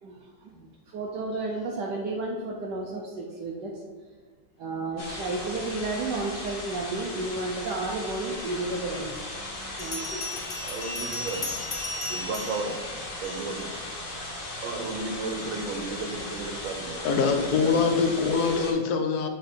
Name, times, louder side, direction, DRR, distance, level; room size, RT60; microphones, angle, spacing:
voice 1, 0.0-3.8 4.6-9.2 9.8-10.2, right 2 dB, 65° right, -1 dB, 1.3 m, -32 dB
sound 1, 5.0-18.7, left 1 dB, 85° left, 2.6 m, -37 dB
Bell, 9.8-13.7, left 2 dB, 40° left, 0.7 m, -36 dB
voice 2, 10.6-11.5 12.1-12.9 13.2-13.7 14.6-17.8, right 3 dB, 90° right, 5 dB, 1.8 m, -34 dB
voice 3, 17.0-19.3, left 5 dB, 60° left, 6 dB, 1.2 m, -24 dB
7.5 x 5.1 x 4.4 m, 1.5 s
omnidirectional pair, 2.1 m